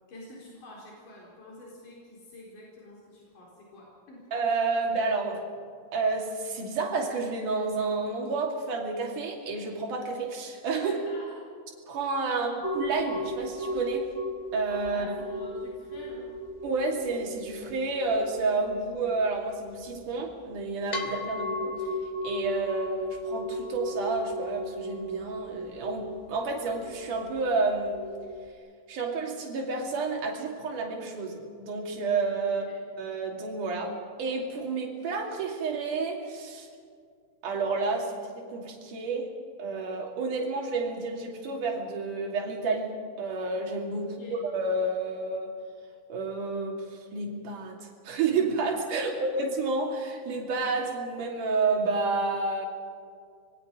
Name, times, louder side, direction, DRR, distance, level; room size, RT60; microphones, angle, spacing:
voice 1, 0.1-4.3 10.8-11.4 14.9-16.3 21.4-21.5 32.6-32.7 44.0-44.4 48.8-49.3, left 1 dB, 80° left, -4 dB, 5.7 m, -47 dB
voice 2, 4.3-5.4 5.9-11.0 11.9-14.1 14.5-15.1 16.6-21.9 22.2-28.0 28.9-32.7 33.0-36.7 37.4-39.3 39.6-44.2 44.4-45.5 46.1-52.7, right 3 dB, 75° right, 0 dB, 4.1 m, -30 dB
sound 1, 12.6-28.5, left 1 dB, 55° left, 0.4 m, -36 dB
26.5 x 21.5 x 5.1 m, 2.2 s
omnidirectional pair, 3.6 m